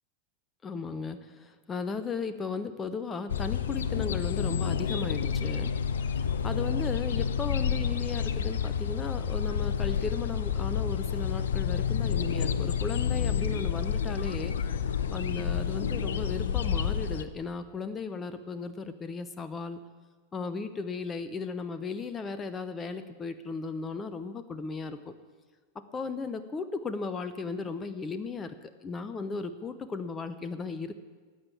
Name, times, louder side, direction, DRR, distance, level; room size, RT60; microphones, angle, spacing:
voice 1, 0.6-5.7 6.4-14.6 15.1-19.8 20.3-25.1 25.7-31.0, left 4 dB, 20° left, 11 dB, 0.8 m, -36 dB
sound 1, 3.3-17.2, left 7 dB, 65° left, 0.7 m, -29 dB
15.0 x 9.0 x 8.6 m, 1.5 s
figure-of-eight pair, 90°, 0 cm